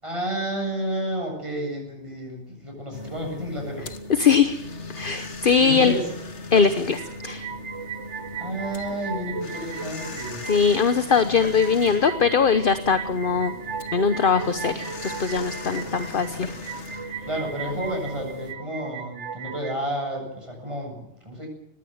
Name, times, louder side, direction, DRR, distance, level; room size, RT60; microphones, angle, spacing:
voice 1, 0.0-3.9 5.6-6.1 8.3-10.5 17.2-21.5, equal, 25° right, 0 dB, 7.9 m, -31 dB
sound 1, 2.9-18.5, left 2 dB, 85° left, 2.1 m, -39 dB
voice 2, 4.1-4.6 5.0-5.9 6.5-7.5 10.5-13.5 13.9-16.5, left 6 dB, 50° left, 11 dB, 1.1 m, -21 dB
sound 2, 6.9-19.7, right 6 dB, 90° right, 1.8 m, -37 dB
20.5 x 16.5 x 9.4 m, 0.79 s
omnidirectional pair, 1.1 m